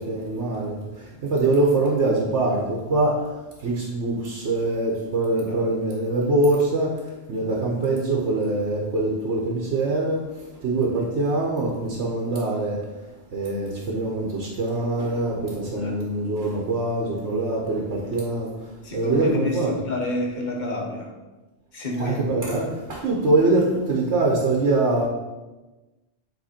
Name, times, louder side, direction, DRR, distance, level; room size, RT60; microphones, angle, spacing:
voice 1, 0.0-3.3 3.6-6.9 7.3-10.2 10.6-12.8 13.3-19.7 22.0-25.1, right 2 dB, 85° right, -2 dB, 1.3 m, -23 dB
voice 2, 18.8-21.1 21.7-22.6, left 2 dB, 45° left, 0 dB, 1.2 m, -29 dB
7.8 x 3.2 x 4.3 m, 1.1 s
omnidirectional pair, 1.1 m